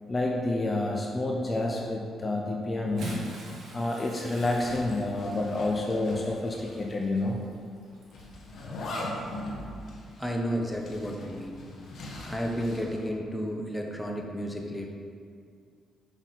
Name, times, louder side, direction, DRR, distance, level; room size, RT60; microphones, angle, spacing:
voice 1, 0.1-3.1 3.7-7.4, left 2 dB, 25° left, 0 dB, 0.8 m, -29 dB
Bathtub (filling or washing) / Splash splatter, 2.8-8.4 9.3-9.5 10.9-11.0, right 1 dB, 65° right, 1.7 m, -44 dB
Zipper (clothing), 4.3-6.9 7.1-7.2 8.1-13.1, left 1 dB, 60° left, 1.4 m, -40 dB
voice 2, 10.2-11.6 12.2-14.9, equal, 5° left, 0 dB, 0.9 m, -32 dB
6.4 x 5.9 x 4.0 m, 2.2 s
cardioid pair, 90°, 0 cm